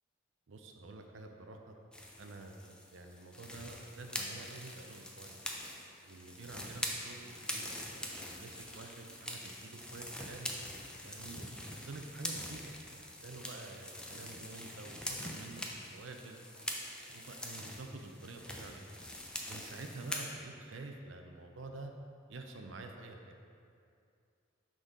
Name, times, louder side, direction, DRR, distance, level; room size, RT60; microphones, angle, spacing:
voice 1, 0.5-1.8 2.2-5.4 6.0-10.5 11.0-16.4 17.1-18.9 19.5-21.9 22.3-23.4, right 3 dB, 65° right, 4 dB, 0.5 m, -49 dB
sound 1, 1.9-20.3, left 1 dB, 5° left, 0.4 m, -44 dB
6.3 x 3.8 x 5.1 m, 2.4 s
head